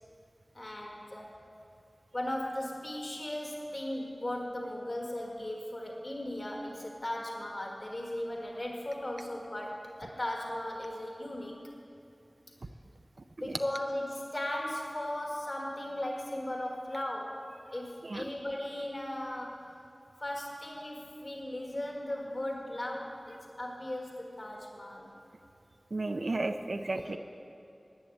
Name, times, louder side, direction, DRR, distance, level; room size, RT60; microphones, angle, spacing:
voice 1, 0.5-1.5 2.1-11.6 13.4-17.4 17.7-19.7 20.2-25.1 26.9-27.2, left 1 dB, 50° left, 0 dB, 1.6 m, -37 dB
voice 2, 25.9-27.2, right 2 dB, 75° right, 6 dB, 0.5 m, -33 dB
11.0 x 9.4 x 7.9 m, 2.7 s
wide cardioid pair, 50°, 0 cm